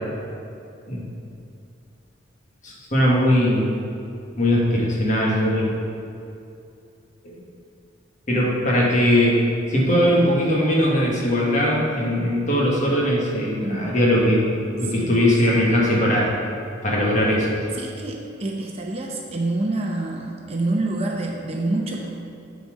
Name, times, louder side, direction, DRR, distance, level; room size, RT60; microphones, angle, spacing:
voice 1, 2.6-3.7 4.4-5.7 7.2-7.3 8.3-9.4 9.7-14.4 14.8-16.3 16.8-17.5, equal, 40° left, -4 dB, 1.5 m, -20 dB
voice 2, 14.8-15.2 17.8-22.1, right 2 dB, 30° right, 0 dB, 0.7 m, -27 dB
9.6 x 4.3 x 4.8 m, 2.6 s
head